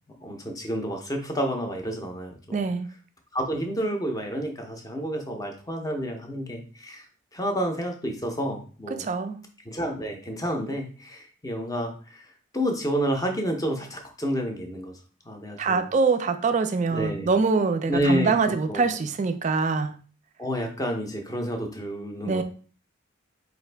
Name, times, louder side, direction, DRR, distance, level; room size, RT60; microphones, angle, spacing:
voice 1, 0.2-2.6 3.3-7.0 7.3-9.0 9.6-12.3 12.5-15.0 15.3-15.9 16.9-17.3 17.9-18.3 18.7-18.8 20.4-22.4, equal, 15° left, 0.6 m, -29 dB
voice 2, 2.5-2.9 9.0-9.4 15.6-20.0 22.3-22.4, right 4 dB, 35° right, 0.3 m, -24 dB
4.6 x 2.5 x 3.3 m
head